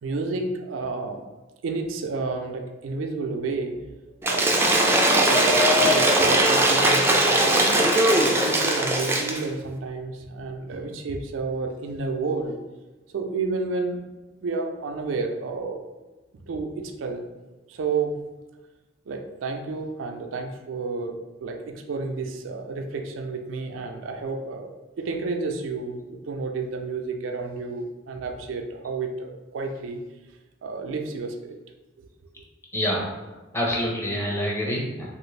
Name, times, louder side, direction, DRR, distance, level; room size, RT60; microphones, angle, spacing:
voice 1, 0.0-1.2 1.6-3.7 4.2-4.7 5.3-12.5 13.1-15.8 16.5-17.3 17.7-18.2 19.1-24.7 25.0-30.0 30.6-31.6, right 3 dB, 85° right, 4 dB, 0.4 m, -31 dB
Cheering / Applause / Crowd, 4.2-9.4, right 1 dB, 15° right, 0.3 m, -20 dB
voice 2, 32.7-33.0 33.5-35.1, equal, 15° left, -3 dB, 0.7 m, -26 dB
3.0 x 2.5 x 3.2 m, 1.2 s
head